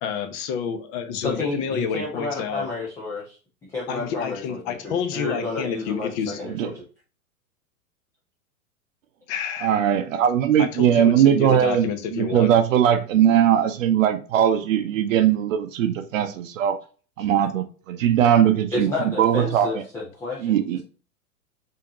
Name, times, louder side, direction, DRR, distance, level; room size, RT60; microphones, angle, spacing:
voice 1, 0.0-2.7 3.9-6.4 9.3-9.8 10.6-12.5, left 7 dB, 35° left, 0.8 m, -29 dB
voice 2, 1.2-3.4 3.7-6.8 18.7-20.8, left 2 dB, 5° left, 0.4 m, -31 dB
voice 3, 9.6-16.8 17.2-18.9 19.2-19.7 20.4-20.8, right 10 dB, 60° right, 0.7 m, -20 dB
5.1 x 2.8 x 2.9 m
hypercardioid pair, 105°, 45 cm